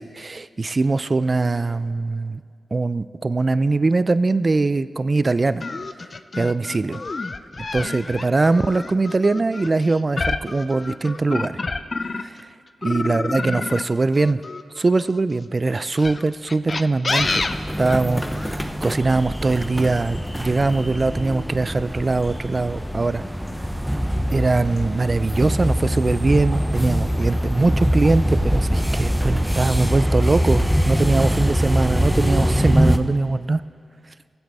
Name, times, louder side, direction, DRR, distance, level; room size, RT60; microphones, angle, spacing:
voice 1, 0.0-2.4 2.7-5.6 6.4-7.0 7.7-11.6 12.2-12.3 12.8-14.4 14.8-17.5 17.8-23.2 24.3-33.6, right 3 dB, 40° right, 15 dB, 0.3 m, -21 dB
sound 1, 5.6-12.4 12.8-15.2 15.9-18.5, left 3 dB, 50° left, 0.4 m, -28 dB
sound 2, 17.2-33.0, equal, ahead, 0.7 m, -23 dB
16.5 x 8.0 x 3.5 m, 2.2 s
cardioid pair, 50°, 0 cm